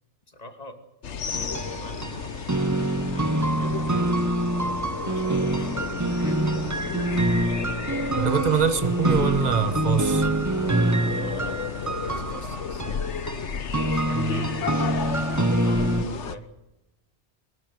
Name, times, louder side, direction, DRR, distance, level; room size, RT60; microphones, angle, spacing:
voice 1, 0.3-0.8 1.4-2.4 3.1-4.5 5.0-6.7 11.1-13.2 13.8-16.5, equal, 35° left, 2.6 m, -44 dB
sound 1, 1.0-16.4, left 6 dB, 80° left, 1.4 m, -33 dB
sound 2, 1.3-16.0, right 2 dB, 20° right, 0.8 m, -26 dB
voice 2, 8.2-10.3 14.1-14.5, right 6 dB, 40° right, 1.4 m, -24 dB
23.5 x 14.5 x 9.5 m
omnidirectional pair, 1.2 m